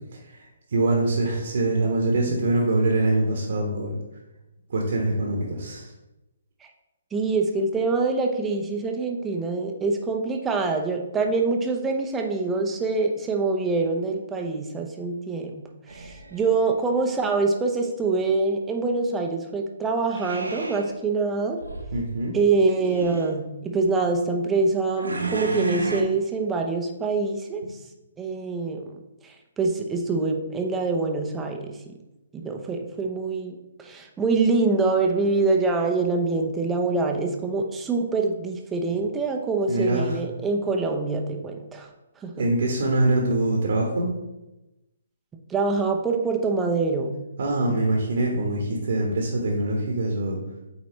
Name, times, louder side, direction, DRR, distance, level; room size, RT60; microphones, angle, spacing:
voice 1, 0.1-4.0 4.7-5.9 21.9-22.3 27.6-27.7 39.7-40.2 42.4-44.1 47.4-50.4, right 2 dB, 60° right, -1 dB, 1.2 m, -24 dB
voice 2, 7.1-15.6 15.9-21.6 22.3-27.7 28.2-28.8 29.2-31.8 32.3-41.9 42.2-42.3 45.5-47.2, right 3 dB, 10° right, 2 dB, 0.8 m, -25 dB
sound 1, 15.9-16.7 20.1-20.9 21.6-22.0 22.7-23.3 25.0-26.0, right 3 dB, 85° right, 1.0 m, -32 dB
8.5 x 4.1 x 3.2 m, 0.98 s
figure-of-eight pair, 135°, 0 cm